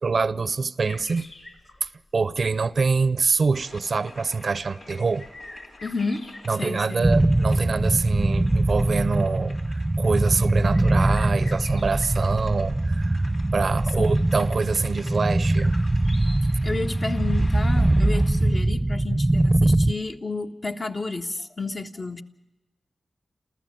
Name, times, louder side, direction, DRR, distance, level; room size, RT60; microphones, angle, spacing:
voice 1, 0.0-1.3 1.8-5.3 6.5-15.8, right 4 dB, 65° right, 0.7 m, -25 dB
sound 1, 0.8-17.1, left 2 dB, 70° left, 4.9 m, -48 dB
sound 2, 3.5-18.6, left 2 dB, 85° left, 4.1 m, -49 dB
voice 2, 5.8-6.2 6.5-7.1 14.0-14.2 16.4-22.2, left 3 dB, 45° left, 1.4 m, -31 dB
sound 3, 7.0-19.9, right 1 dB, 20° right, 0.7 m, -22 dB
27.5 x 15.0 x 7.7 m
cardioid pair, 55°, 0 cm